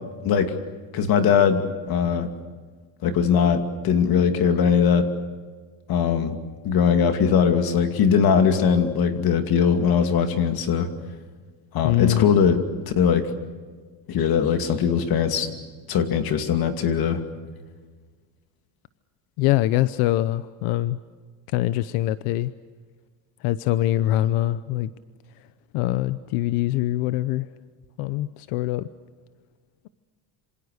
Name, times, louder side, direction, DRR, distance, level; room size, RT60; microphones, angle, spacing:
voice 1, 0.9-2.3 3.0-5.1 5.9-6.4 6.6-10.9 11.7-12.6 13.0-13.3 14.1-15.5 15.9-17.2, left 7 dB, 45° left, 7 dB, 2.5 m, -20 dB
voice 2, 11.8-12.3 19.4-21.0 21.5-22.5 23.4-24.9 25.7-27.5 28.0-28.8, left 14 dB, 85° left, 14 dB, 0.9 m, -23 dB
27.0 x 26.5 x 6.6 m, 1.5 s
cardioid pair, 165°, 50 cm